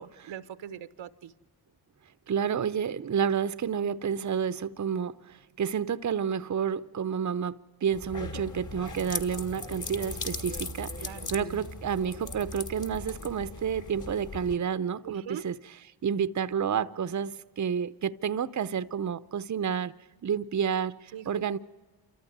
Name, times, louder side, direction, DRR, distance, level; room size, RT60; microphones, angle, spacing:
voice 1, 0.0-1.3 11.0-11.3 15.0-15.4 21.1-21.4, right 9 dB, 75° right, 0.9 m, -41 dB
voice 2, 2.3-15.6 16.0-19.9 20.2-21.6, right 7 dB, 40° right, 0.7 m, -30 dB
sound 1, 7.9-14.6, left 2 dB, 40° left, 2.0 m, -38 dB
28.0 x 14.0 x 9.4 m
supercardioid pair, 45°, 46 cm